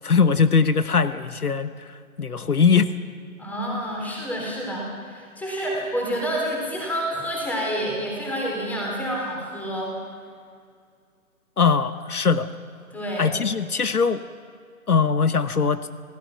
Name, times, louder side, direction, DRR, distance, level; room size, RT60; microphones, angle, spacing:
voice 1, 0.0-2.9 11.6-12.5 13.2-14.2 14.9-15.9, left 5 dB, 85° left, 13 dB, 1.1 m, -21 dB
voice 2, 3.4-9.9 12.9-13.3, equal, 5° left, -2 dB, 3.6 m, -28 dB
27.0 x 16.5 x 5.9 m, 2.2 s
figure-of-eight pair, 145°, 44 cm